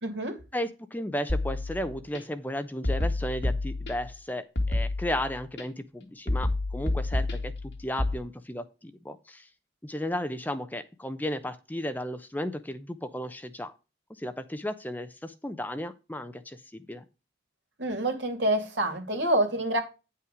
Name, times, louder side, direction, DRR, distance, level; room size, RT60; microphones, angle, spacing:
voice 1, 0.0-0.4 17.8-19.8, right 1 dB, 80° right, 2.6 m, -27 dB
voice 2, 0.5-7.5 7.8-9.5 9.8-13.7 14.2-16.6 16.9-17.0, left 1 dB, 10° left, 0.6 m, -34 dB
sound 1, 1.3-2.2 2.8-4.2 4.6-5.6 6.3-8.2, left 2 dB, 70° left, 2.4 m, -29 dB
9.6 x 5.7 x 5.0 m
head